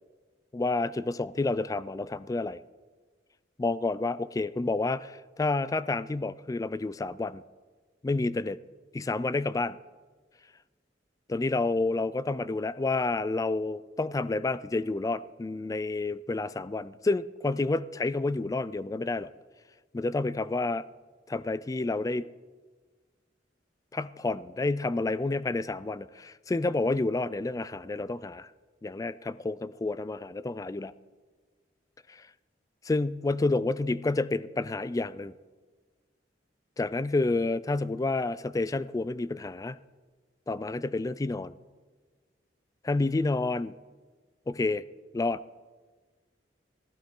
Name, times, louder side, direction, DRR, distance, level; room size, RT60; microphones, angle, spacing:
voice 1, 0.5-2.6 3.6-7.4 8.0-8.6 8.9-9.8 11.3-19.3 19.9-20.8 21.3-22.3 23.9-28.5 28.8-30.9 32.1-32.2 32.8-35.3 36.8-39.8 40.5-41.6 42.8-43.7 44.5-44.8 45.1-45.4, left 3 dB, 20° left, 17 dB, 0.3 m, -29 dB
15.5 x 14.0 x 3.7 m, 1.4 s
head